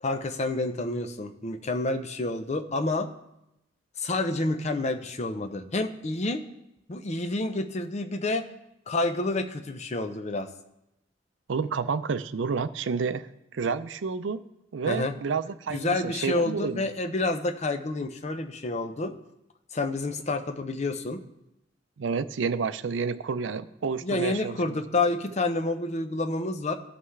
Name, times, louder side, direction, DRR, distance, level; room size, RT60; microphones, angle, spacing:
voice 1, 0.0-3.1 4.0-6.4 6.9-8.5 8.9-10.5 14.9-15.1 15.7-19.1 19.7-21.2 24.0-26.8, left 2 dB, 40° left, 7 dB, 0.6 m, -29 dB
voice 2, 11.5-13.3 13.5-14.4 14.7-16.8 22.0-24.8, right 5 dB, 75° right, 13 dB, 0.5 m, -30 dB
17.0 x 5.7 x 3.2 m, 0.86 s
head